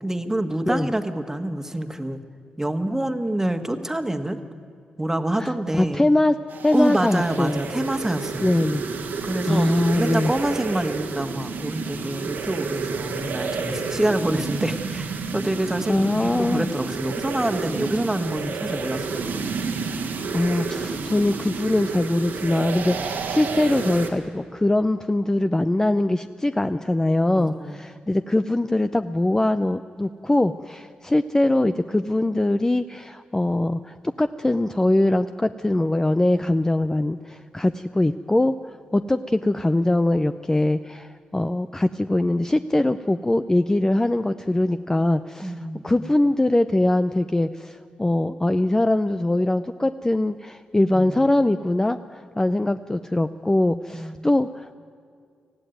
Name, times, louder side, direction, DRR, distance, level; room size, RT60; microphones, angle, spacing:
voice 1, 0.0-2.2 2.6-4.4 5.0-6.0 6.7-8.5 9.2-19.3 27.3-27.8 45.4-46.1 50.9-51.3 53.9-54.2, right 1 dB, 15° right, 8 dB, 1.6 m, -27 dB
voice 2, 5.4-6.4 6.6-7.6 8.4-8.8 9.5-10.3 15.9-16.7 20.3-45.5 45.8-54.7, left 1 dB, 15° left, 10 dB, 0.6 m, -22 dB
sound 1, 6.5-24.1, right 5 dB, 85° right, 2.1 m, -30 dB
19.5 x 14.5 x 9.3 m, 2.3 s
cardioid pair, 55°, 3 cm